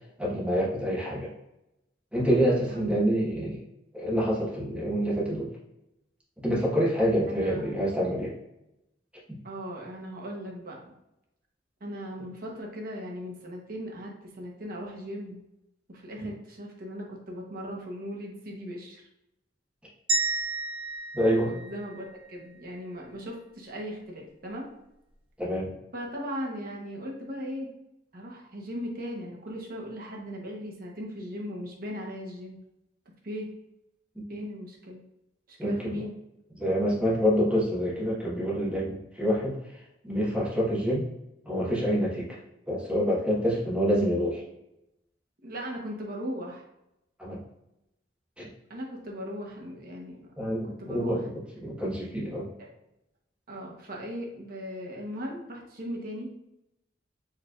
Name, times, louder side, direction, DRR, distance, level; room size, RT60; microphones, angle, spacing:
voice 1, 0.2-1.3 2.1-3.6 3.9-5.5 6.4-8.3 16.2-16.3 21.1-21.5 25.4-25.7 34.3-34.4 35.6-36.0 36.6-39.6 40.0-41.1 41.4-42.4 42.7-44.4 47.2-47.4 48.4-48.5 50.4-51.3 51.6-52.5, equal, 5° right, -6 dB, 1.2 m, -27 dB
voice 2, 2.4-3.3 7.3-7.8 9.4-10.9 11.8-15.4 15.9-19.0 21.4-24.7 25.9-27.7 28.1-32.6 33.2-33.5 34.3-35.0 35.5-36.1 45.4-46.7 48.7-50.2 50.6-51.3 52.6-52.7 53.5-56.3, equal, 55° right, -1 dB, 1.0 m, -38 dB
sound 1, 20.1-22.3, right 3 dB, 30° right, 0.6 m, -31 dB
4.6 x 3.2 x 2.4 m, 0.88 s
head